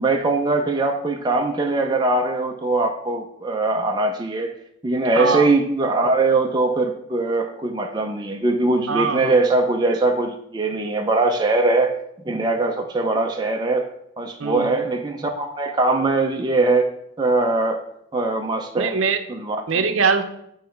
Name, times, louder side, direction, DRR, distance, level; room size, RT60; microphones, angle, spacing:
voice 1, 0.0-4.5 4.8-12.0 12.2-13.9 14.2-16.9 17.2-17.8 18.1-19.0 19.3-19.6, right 2 dB, 20° right, 3 dB, 0.4 m, -21 dB
voice 2, 5.2-5.5 8.9-9.3 14.4-14.8 18.7-19.2 19.7-20.2, right 5 dB, 70° right, 8 dB, 0.6 m, -22 dB
7.7 x 3.1 x 5.6 m, 0.76 s
head